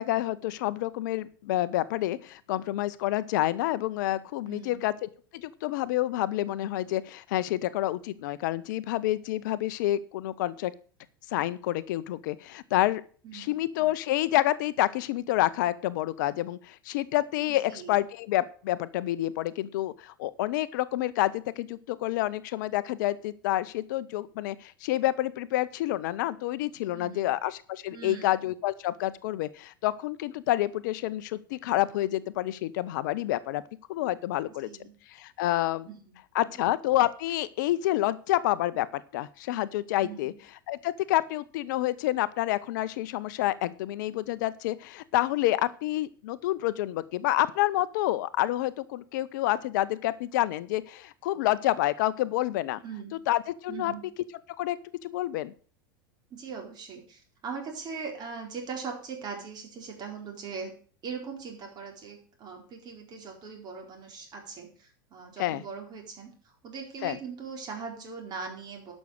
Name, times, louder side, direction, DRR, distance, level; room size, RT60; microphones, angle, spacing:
voice 1, 0.0-10.7 11.3-13.0 13.3-33.6 33.9-34.7 35.1-35.9 36.3-40.3 40.7-52.8 53.3-53.9 54.6-54.8 55.0-55.5 65.4-65.6 67.0-67.2, left 15 dB, 60° left, 16 dB, 0.6 m, -28 dB
voice 2, 4.4-4.9 13.2-13.5 17.5-18.0 26.9-27.3 27.9-28.3 34.6-34.9 35.9-36.1 36.4-36.6 40.0-40.3 52.8-53.2 53.7-54.0 56.3-60.7 61.0-66.3 66.6-68.9, right 5 dB, 35° right, 2 dB, 4.2 m, -40 dB
11.5 x 6.3 x 6.4 m, 0.42 s
figure-of-eight pair, 85°, 12 cm